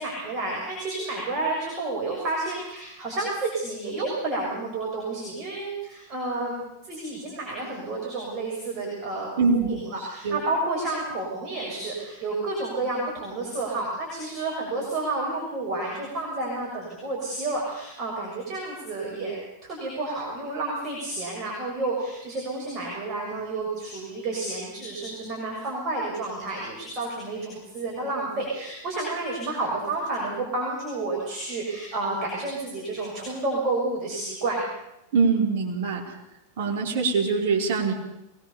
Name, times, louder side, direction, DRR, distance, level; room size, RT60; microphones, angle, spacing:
voice 1, 0.0-34.6, right 2 dB, 35° right, -2 dB, 6.7 m, -30 dB
voice 2, 9.4-9.8 10.2-10.4 35.1-36.0 36.6-37.9, right 4 dB, 55° right, 0 dB, 4.7 m, -23 dB
23.0 x 20.5 x 7.0 m, 0.87 s
figure-of-eight pair, 90°, 0 cm